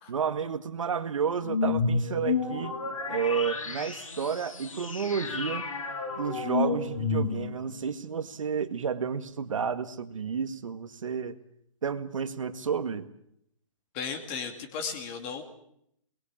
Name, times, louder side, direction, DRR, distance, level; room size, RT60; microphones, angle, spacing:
voice 1, 0.1-2.8 3.1-5.7 6.1-11.4 11.8-13.1, right 6 dB, 70° right, 10 dB, 1.9 m, -31 dB
sound 1, 1.4-7.7, left 4 dB, 75° left, 6.4 m, -31 dB
voice 2, 13.9-15.4, left 6 dB, 20° left, 6 dB, 2.4 m, -35 dB
22.0 x 21.5 x 7.5 m, 0.73 s
hypercardioid pair, 175°, 17 cm